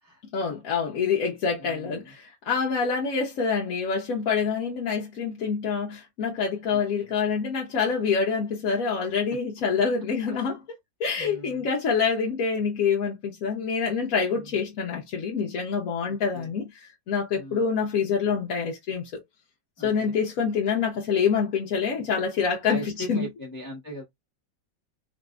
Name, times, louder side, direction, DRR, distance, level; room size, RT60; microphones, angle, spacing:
voice 1, 0.3-10.6 11.0-19.2 19.8-23.3, left 6 dB, 60° left, 1.0 m, -26 dB
voice 2, 1.6-2.1 6.7-7.1 10.2-10.4 11.2-11.7 14.3-14.6 16.0-16.5 17.3-17.6 19.8-20.2 22.7-24.0, equal, 15° left, 0.8 m, -40 dB
4.0 x 2.6 x 2.3 m
omnidirectional pair, 1.9 m